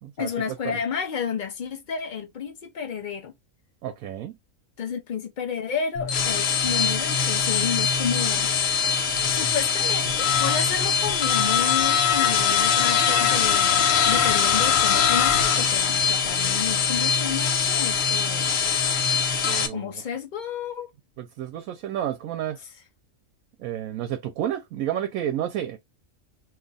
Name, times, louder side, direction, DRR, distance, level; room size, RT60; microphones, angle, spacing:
voice 1, 0.2-3.3 4.8-8.5 9.3-18.5 19.7-20.9, left 7 dB, 55° left, 0.5 m, -31 dB
voice 2, 3.8-4.4 19.4-19.9 21.2-22.6 23.6-25.8, right 11 dB, 85° right, 1.0 m, -30 dB
sound 1, 6.0-19.7, left 7 dB, 75° left, 1.1 m, -22 dB
2.8 x 2.3 x 3.9 m
omnidirectional pair, 1.4 m